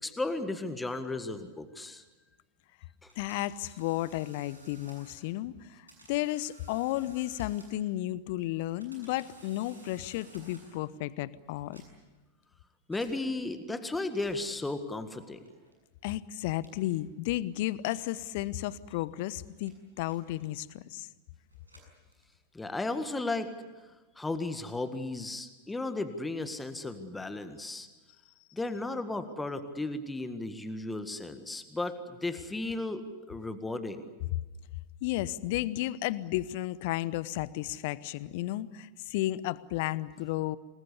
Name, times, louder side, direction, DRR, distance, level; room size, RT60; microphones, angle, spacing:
voice 1, 0.0-2.0 3.0-3.1 12.9-15.4 22.5-23.5 24.1-27.9 28.5-33.0 33.3-34.0, left 2 dB, 10° left, 9 dB, 1.7 m, -35 dB
sound 1, 3.1-5.3 5.9-8.0 8.6-10.9 11.6-12.2 12.9-13.1 14.0-14.6 15.4-15.8 16.6-17.0 17.8-18.1 18.9-20.7 21.4-22.5, right 2 dB, 80° right, 7.6 m, -57 dB
voice 2, 3.2-11.8 16.0-21.1 35.0-40.6, left 15 dB, 50° left, 18 dB, 0.9 m, -33 dB
27.5 x 21.0 x 8.3 m, 1.2 s
figure-of-eight pair, 90°, 0 cm